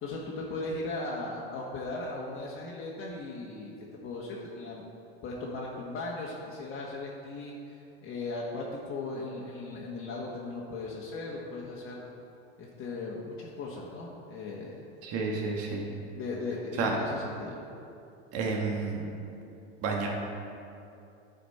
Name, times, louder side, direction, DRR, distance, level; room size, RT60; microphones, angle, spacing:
voice 1, 0.0-3.7 4.0-4.8 5.2-12.1 12.6-14.8 16.1-17.6, left 2 dB, 40° left, -4 dB, 1.3 m, -37 dB
voice 2, 15.0-15.8 16.8-17.0 18.3-19.0 19.8-20.1, right 4 dB, 50° right, -1 dB, 1.4 m, -30 dB
10.5 x 5.0 x 4.2 m, 2.6 s
hypercardioid pair, 100°, 32 cm